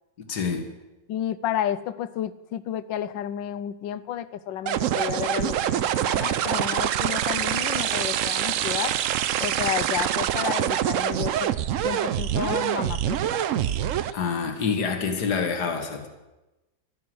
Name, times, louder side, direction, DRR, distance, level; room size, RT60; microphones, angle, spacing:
voice 1, 0.3-0.7 14.1-16.1, left 5 dB, 60° left, 5 dB, 2.2 m, -27 dB
voice 2, 1.1-8.9 9.4-11.5 11.8-13.4, left 10 dB, 75° left, 14 dB, 1.3 m, -31 dB
sound 1, 4.7-14.1, right 10 dB, 80° right, 0.7 m, -25 dB
13.0 x 11.5 x 7.8 m, 1.0 s
omnidirectional pair, 2.0 m